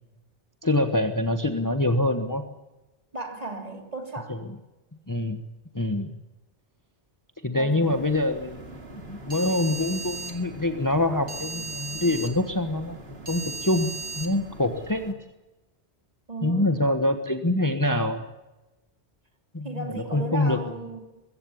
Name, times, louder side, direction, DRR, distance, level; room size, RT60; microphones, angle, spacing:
voice 1, 0.6-2.4 4.3-4.4 5.1-5.4 5.7-6.2 7.4-13.9 14.2-15.1 16.4-18.2 19.5-20.6, left 1 dB, 20° left, 8 dB, 1.2 m, -25 dB
voice 2, 3.1-4.4 7.5-8.5 16.3-16.7 19.6-21.0, right 2 dB, 35° right, 4 dB, 3.6 m, -36 dB
sound 1, 7.8-15.1, right 3 dB, 65° right, 2.6 m, -38 dB
22.0 x 15.5 x 10.0 m, 1.1 s
omnidirectional pair, 1.1 m